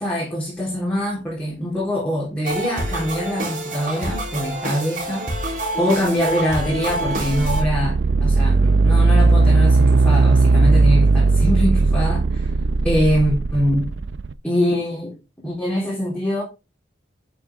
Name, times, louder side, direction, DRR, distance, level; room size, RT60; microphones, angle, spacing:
voice 1, 0.0-5.3 5.8-12.5 12.8-13.9 14.4-15.2 15.4-16.4, equal, 5° left, 3.8 m, -23 dB
sound 1, 2.4-7.6, right 1 dB, 45° right, 3.5 m, -27 dB
sound 2, 6.3-14.3, right 3 dB, 65° right, 0.5 m, -17 dB
12.0 x 6.3 x 3.6 m
head